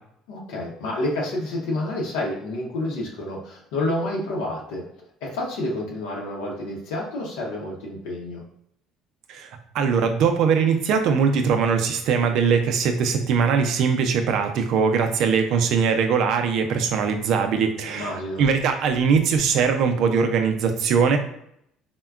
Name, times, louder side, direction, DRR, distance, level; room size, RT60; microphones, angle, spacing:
voice 1, 0.3-4.8 5.2-8.4 17.8-18.4, left 1 dB, 85° left, -3 dB, 0.7 m, -29 dB
voice 2, 9.7-21.2, right 6 dB, 70° right, 6 dB, 0.4 m, -21 dB
3.5 x 2.1 x 2.3 m, 0.74 s
supercardioid pair, 80°, 0 cm